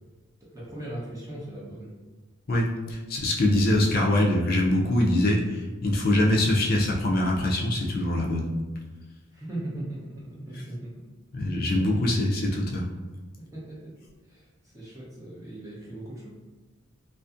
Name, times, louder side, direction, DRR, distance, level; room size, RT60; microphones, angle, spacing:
voice 1, 0.4-1.9 9.3-10.9 13.5-13.9 14.2-16.3, right 1 dB, 15° right, -7 dB, 0.6 m, -38 dB
voice 2, 2.5-8.5 11.3-12.9, left 1 dB, 45° left, -1 dB, 0.4 m, -23 dB
2.5 x 2.5 x 2.4 m, 1.2 s
head